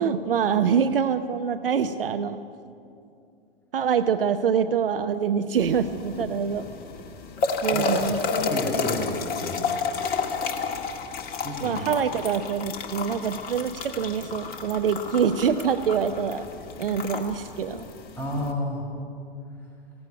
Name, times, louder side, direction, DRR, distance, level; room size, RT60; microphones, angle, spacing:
voice 1, 0.0-2.4 3.7-6.7 7.6-8.2 11.6-16.5 16.8-17.9, right 7 dB, 65° right, 10 dB, 0.9 m, -25 dB
sound 1, 5.6-18.5, left 4 dB, 30° left, 2.0 m, -31 dB
voice 2, 7.7-8.0 8.3-9.6 11.3-11.8 18.2-18.9, left 1 dB, 5° left, -3 dB, 6.7 m, -31 dB
16.5 x 16.0 x 10.0 m, 2.5 s
figure-of-eight pair, 100°, 30 cm